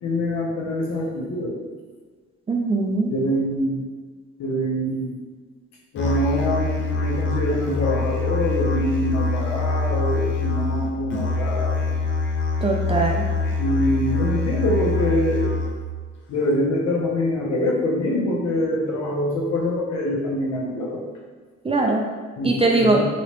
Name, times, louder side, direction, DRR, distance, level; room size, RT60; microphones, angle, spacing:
voice 1, 0.0-1.5 3.1-3.8 4.4-5.2 5.9-12.0 13.6-15.5 16.3-21.0 22.4-23.1, left 1 dB, 65° left, -2 dB, 0.9 m, -24 dB
voice 2, 2.5-3.1 12.6-13.2 21.6-22.0 22.4-23.0, right 3 dB, 20° right, 0 dB, 0.4 m, -20 dB
Musical instrument, 6.0-15.9, left 3 dB, 40° left, 0.6 m, -24 dB
3.0 x 2.8 x 3.0 m, 1.5 s
cardioid pair, 90°, 30 cm